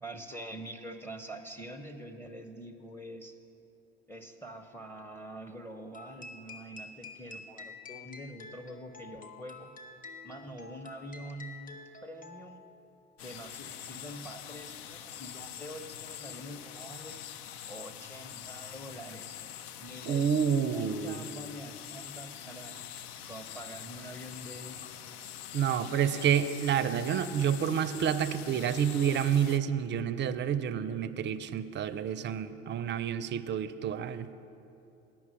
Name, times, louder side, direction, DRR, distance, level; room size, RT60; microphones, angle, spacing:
voice 1, 0.0-3.3 4.1-9.7 10.2-12.6 13.2-17.2 17.7-19.4 19.8-22.8 23.2-25.1, right 1 dB, 5° left, 7 dB, 0.7 m, -45 dB
sound 1, 5.9-12.8, left 3 dB, 25° left, 0.9 m, -48 dB
sound 2, 13.2-29.6, left 10 dB, 70° left, 0.5 m, -44 dB
voice 2, 20.1-21.2 25.5-34.3, right 8 dB, 35° right, 14 dB, 0.5 m, -29 dB
9.4 x 5.9 x 7.6 m, 2.8 s
hypercardioid pair, 60°, 32 cm